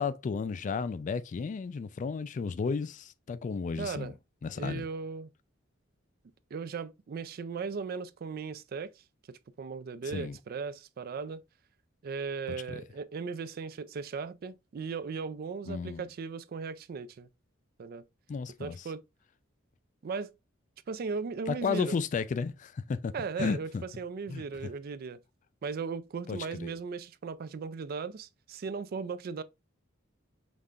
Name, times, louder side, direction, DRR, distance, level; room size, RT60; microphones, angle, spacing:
voice 1, 0.0-4.1 4.4-4.8 10.1-10.4 15.7-16.0 18.3-18.9 21.5-23.8 24.3-24.7 26.3-26.8, left 5 dB, 40° left, 0.3 m, -33 dB
voice 2, 3.8-4.1 4.6-5.3 6.5-8.9 9.3-11.4 12.0-17.3 17.8-18.1 18.6-19.0 20.0-20.3 20.9-22.0 23.1-25.2 25.6-29.4, right 5 dB, 50° right, 0.3 m, -37 dB
5.2 x 3.2 x 2.3 m
head